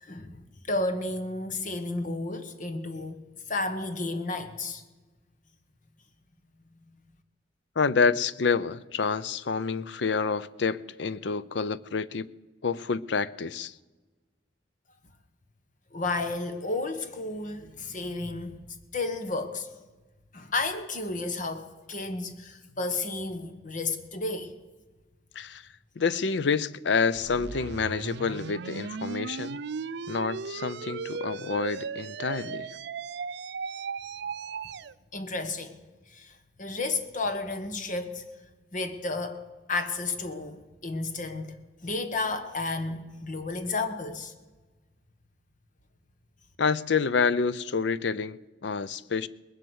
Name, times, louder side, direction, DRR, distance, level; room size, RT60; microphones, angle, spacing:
voice 1, 0.0-3.2 3.5-4.8 15.9-18.6 18.9-19.8 20.3-24.5 35.1-35.7 36.1-38.2 38.7-39.4 39.7-41.6 41.8-44.3, left 3 dB, 45° left, 1.2 m, -32 dB
voice 2, 7.8-12.3 12.6-13.7 25.3-25.7 26.0-29.6 30.1-32.7 46.6-49.3, left 5 dB, 70° left, 0.5 m, -28 dB
sound 1, 27.2-34.9, right 5 dB, 65° right, 0.4 m, -36 dB
20.5 x 7.7 x 8.0 m
head